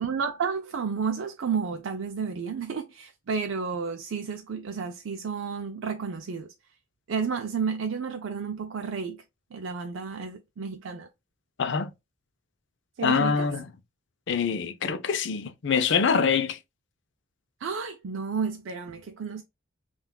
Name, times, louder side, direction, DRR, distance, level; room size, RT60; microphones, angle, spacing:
voice 1, 0.0-6.5 7.1-9.2 9.5-11.1 13.0-13.5 17.6-19.4, right 5 dB, 65° right, 0.4 m, -31 dB
voice 2, 11.6-11.9 13.0-13.6 14.3-16.6, left 6 dB, 60° left, 0.5 m, -25 dB
5.6 x 2.4 x 2.2 m
head